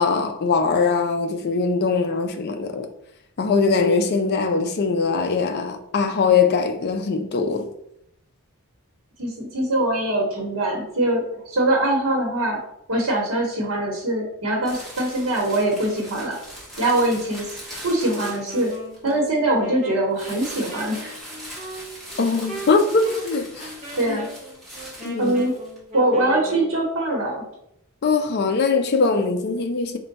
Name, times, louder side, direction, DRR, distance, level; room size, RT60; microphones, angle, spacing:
voice 1, 0.0-2.9 3.4-7.7 22.2-23.7 24.1-24.2 25.0-25.4 28.0-30.0, left 4 dB, 45° left, 0.4 m, -21 dB
voice 2, 9.2-12.6 12.9-16.4 16.8-17.5 17.8-18.7 19.0-21.1 24.0-24.3 25.2-25.6 25.9-27.4, right 1 dB, 65° right, 1.0 m, -22 dB
sound 1, 14.6-19.2 20.1-25.8, equal, ahead, 1.0 m, -40 dB
Wind instrument woodwind instrument, 18.1-26.8, right 2 dB, 30° right, 1.1 m, -39 dB
4.4 x 2.2 x 4.0 m
head